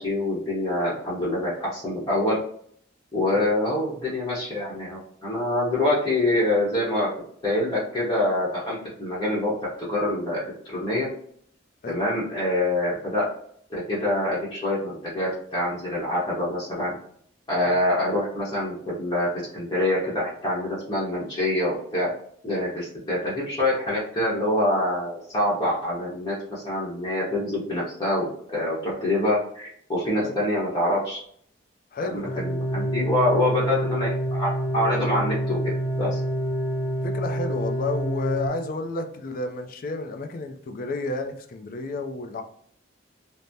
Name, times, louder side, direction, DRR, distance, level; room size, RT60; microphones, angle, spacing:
voice 1, 0.0-2.4 3.1-7.1 7.4-9.5 9.8-10.4 10.7-11.1 11.8-13.2 13.7-16.9 17.5-22.1 22.4-31.2 32.0-34.5 34.7-36.2, left 1 dB, 20° left, -8 dB, 0.8 m, -25 dB
voice 2, 31.9-32.4 37.0-42.4, left 3 dB, 45° left, 5 dB, 0.3 m, -31 dB
sound 1, 32.2-38.5, right 1 dB, 75° left, 0.9 m, -27 dB
3.3 x 2.0 x 2.6 m, 0.63 s
head